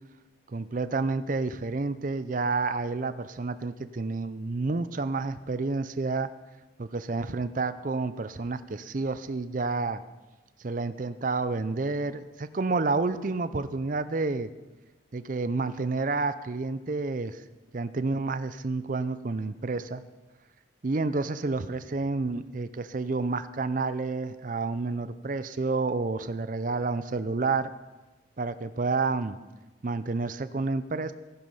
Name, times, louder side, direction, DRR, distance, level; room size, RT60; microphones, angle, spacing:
voice 1, 0.5-6.3 6.8-10.0 10.6-14.5 15.1-17.4 17.7-20.0 20.8-27.7 28.4-29.4 29.8-31.1, right 3 dB, 45° right, 13 dB, 0.5 m, -29 dB
15.0 x 10.5 x 5.6 m, 1.2 s
head